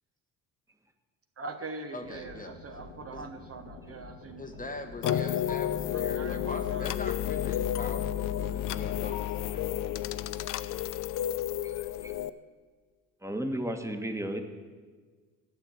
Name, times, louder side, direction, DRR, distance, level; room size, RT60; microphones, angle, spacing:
voice 1, 1.4-4.4 5.0-5.4 5.9-6.9, right 3 dB, 35° right, 6 dB, 1.0 m, -42 dB
voice 2, 1.9-2.6 3.1-3.3 4.4-9.6, left 2 dB, 20° left, 6 dB, 1.1 m, -42 dB
sound 1, 2.0-9.0, left 3 dB, 90° left, 1.8 m, -49 dB
sound 2, 5.0-12.3, left 11 dB, 55° left, 0.5 m, -31 dB
voice 3, 11.6-12.1 13.2-14.4, right 1 dB, 5° right, 5 dB, 1.4 m, -34 dB
9.3 x 6.7 x 8.8 m, 1.5 s
hypercardioid pair, 60°, 39 cm